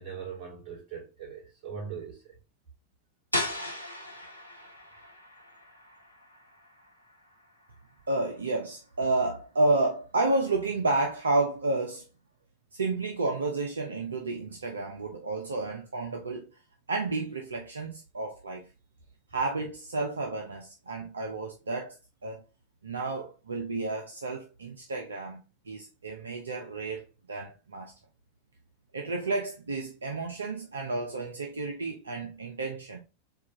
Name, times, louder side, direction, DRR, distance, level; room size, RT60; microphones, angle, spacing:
voice 1, 0.0-2.3, right 6 dB, 40° right, 2.3 m, -40 dB
sound 1, 3.3-9.0, left 1 dB, 90° left, 0.6 m, -38 dB
voice 2, 8.1-12.0 12.7-16.5 16.9-18.6 19.3-21.9 22.2-22.4 22.8-27.9 28.9-33.0, right 2 dB, 70° right, 0.5 m, -31 dB
4.5 x 2.3 x 2.9 m
figure-of-eight pair, 90°, 0 cm